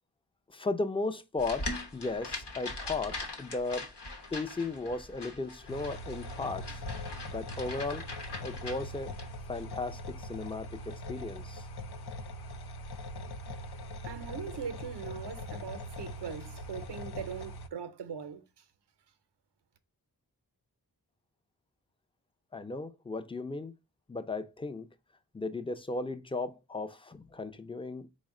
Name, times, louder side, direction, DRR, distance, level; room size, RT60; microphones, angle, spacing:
voice 1, 0.5-3.9 4.3-6.8 7.3-8.0 8.4-9.1 9.5-11.7 22.5-23.7 24.1-24.9 25.3-28.1, left 3 dB, 15° left, 0.4 m, -36 dB
sound 1, 1.4-9.3, left 2 dB, 90° left, 0.9 m, -41 dB
sound 2, 5.7-17.7, left 1 dB, 75° left, 0.5 m, -42 dB
voice 2, 14.0-18.6, right 7 dB, 85° right, 0.6 m, -41 dB
4.2 x 2.1 x 3.5 m
wide cardioid pair, 60°, 40 cm